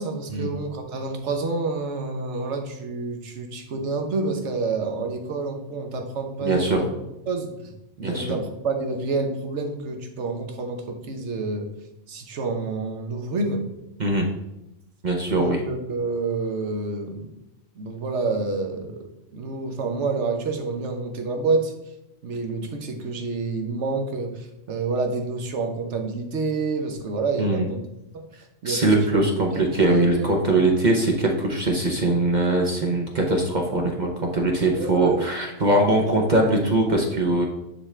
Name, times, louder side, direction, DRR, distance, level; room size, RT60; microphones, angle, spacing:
voice 1, 0.0-6.9 7.3-7.7 8.0-11.7 12.1-13.6 15.3-17.3 17.8-19.0 19.3-21.7 22.2-27.8 28.6-29.3 29.8-30.3 34.7-35.2, right 3 dB, 65° right, 4 dB, 1.2 m, -28 dB
voice 2, 6.4-6.9 8.0-8.4 14.0-14.3 15.0-15.6 27.4-27.7 28.6-37.5, right 2 dB, 40° right, 1 dB, 0.9 m, -21 dB
9.9 x 3.6 x 3.3 m, 0.89 s
omnidirectional pair, 1.3 m